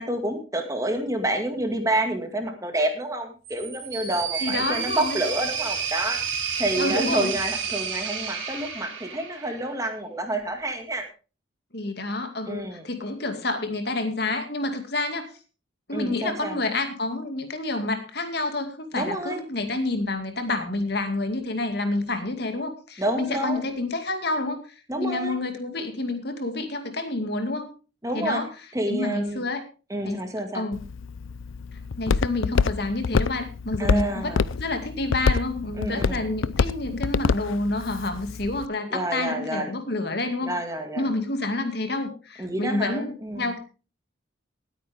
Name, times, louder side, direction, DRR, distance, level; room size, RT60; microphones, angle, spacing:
voice 1, 0.0-11.0 12.5-12.8 15.9-16.6 18.9-19.4 23.0-23.6 24.9-25.4 28.0-28.4 28.7-29.4 29.9-30.7 33.8-34.4 35.8-36.3 38.9-39.7 40.4-41.1 42.4-43.5, right 1 dB, 15° right, 5 dB, 2.0 m, -29 dB
sound 1, 3.4-9.7, right 6 dB, 85° right, 4.3 m, -30 dB
voice 2, 4.4-5.2 6.8-7.3 11.7-15.3 15.9-27.7 28.1-28.5 28.9-29.6 30.0-30.2 30.5-30.9 32.0-40.5 41.0-43.6, left 2 dB, 55° left, 6 dB, 2.2 m, -28 dB
Walk footsteps, 30.7-38.7, left 5 dB, 80° left, 0.5 m, -27 dB
19.5 x 9.1 x 3.6 m, 0.34 s
head